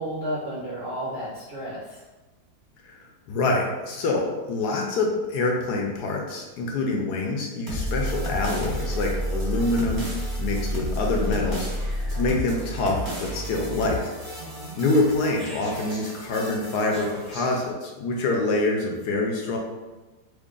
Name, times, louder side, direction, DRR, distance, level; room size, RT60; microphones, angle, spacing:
voice 1, 0.0-2.0 14.4-14.8, right 1 dB, 60° right, -7 dB, 0.6 m, -33 dB
voice 2, 3.3-11.7 12.1-14.1 14.7-19.6, left 2 dB, 75° left, 0 dB, 1.1 m, -26 dB
sound 1, 7.7-17.7, equal, 20° right, 0.7 m, -31 dB
3.1 x 2.5 x 3.7 m, 1.2 s
omnidirectional pair, 1.9 m